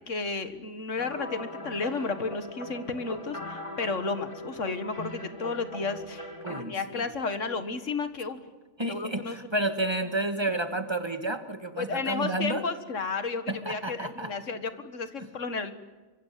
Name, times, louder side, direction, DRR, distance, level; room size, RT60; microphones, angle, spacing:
voice 1, 0.1-6.3 6.7-8.4 8.8-9.4 11.8-15.7, left 4 dB, 85° left, 10 dB, 2.1 m, -32 dB
sound 1, 1.0-6.6, left 2 dB, 25° left, 3.1 m, -40 dB
voice 2, 6.4-7.0 8.8-12.6 13.5-14.3, right 1 dB, 20° right, 8 dB, 1.9 m, -31 dB
27.5 x 24.5 x 7.6 m, 1.3 s
omnidirectional pair, 1.2 m